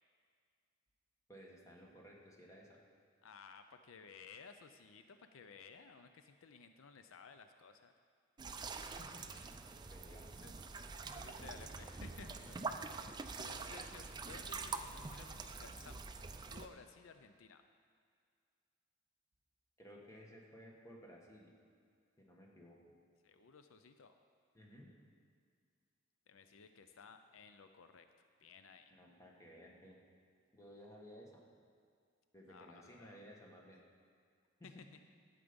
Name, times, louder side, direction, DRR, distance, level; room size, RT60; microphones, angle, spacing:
voice 1, 1.3-2.7 9.0-9.3 9.9-10.5 19.8-21.5 22.2-22.8 24.5-24.9 28.9-30.0 30.5-31.4 32.3-33.8 34.6-34.8, equal, 15° left, -2 dB, 1.5 m, -57 dB
voice 2, 3.2-7.9 10.4-10.5 11.1-12.6 13.2-16.0 16.5-17.6 23.2-24.2 26.3-28.9 32.5-33.5 34.6-34.7, left 5 dB, 75° left, 8 dB, 0.5 m, -57 dB
sound 1, 8.4-16.7, right 4 dB, 20° right, 0.4 m, -45 dB
12.0 x 8.3 x 5.2 m, 2.2 s
head